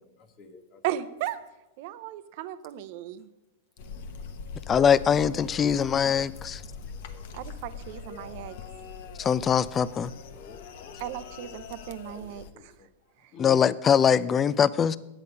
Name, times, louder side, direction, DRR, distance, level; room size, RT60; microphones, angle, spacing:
voice 1, 0.2-0.8 4.7-6.3 7.0-7.3 8.2-9.3 10.3-11.5 12.1-12.9 13.3-13.6 14.3-14.4, left 5 dB, 40° left, 8 dB, 1.2 m, -50 dB
voice 2, 0.8-1.4 1.8-3.3 7.3-8.6 11.0-12.7, right 13 dB, 55° right, 13 dB, 0.7 m, -36 dB
sound 1, 3.8-12.5, left 5 dB, 65° left, 1.0 m, -42 dB
voice 3, 4.7-6.6 9.2-10.1 13.4-15.0, left 7 dB, 25° left, 19 dB, 0.4 m, -22 dB
10.0 x 8.2 x 5.4 m, 0.99 s
hypercardioid pair, 130°, 0 cm